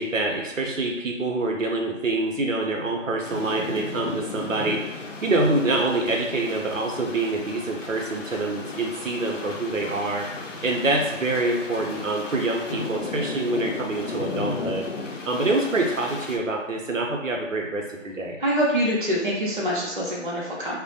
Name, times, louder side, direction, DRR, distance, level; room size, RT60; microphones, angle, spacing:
voice 1, 0.0-10.3 10.6-18.4, right 2 dB, 80° right, 1 dB, 0.7 m, -26 dB
sound 1, 3.2-16.4, left 3 dB, 80° left, 0.6 m, -35 dB
voice 2, 18.4-20.8, equal, 45° right, -6 dB, 0.5 m, -25 dB
2.4 x 2.0 x 2.7 m, 0.96 s
figure-of-eight pair, 175°, 38 cm